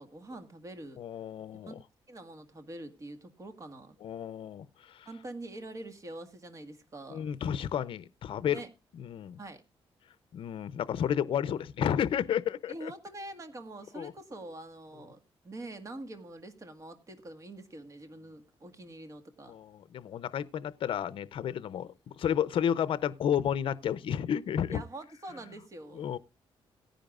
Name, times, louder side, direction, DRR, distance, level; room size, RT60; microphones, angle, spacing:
voice 1, 0.0-1.0 1.5-1.7 2.1-3.9 5.0-7.3 8.4-8.7 9.4-9.6 12.7-15.2 15.4-19.5 24.7-26.0, right 2 dB, 35° right, 1.7 m, -45 dB
voice 2, 1.0-1.8 4.0-5.1 7.1-8.6 9.0-9.4 10.3-12.9 14.0-14.1 19.5-24.8 25.9-26.2, left 9 dB, 65° left, 0.6 m, -32 dB
17.5 x 10.0 x 2.4 m
wide cardioid pair, 140°, 10 cm